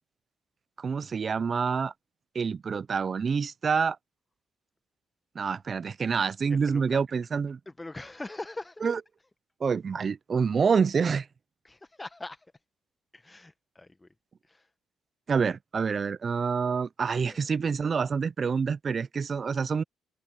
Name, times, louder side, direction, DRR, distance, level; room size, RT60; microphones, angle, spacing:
voice 1, 0.8-1.9 2.3-4.0 5.4-7.6 8.8-9.0 9.6-11.3 15.3-19.8, right 5 dB, 40° right, 0.4 m, -27 dB
voice 2, 6.5-7.0 7.7-8.9 11.6-12.5 13.1-14.1 14.4-14.7 17.2-17.5, left 2 dB, 15° left, 1.1 m, -42 dB
cardioid pair, 90°, 0 cm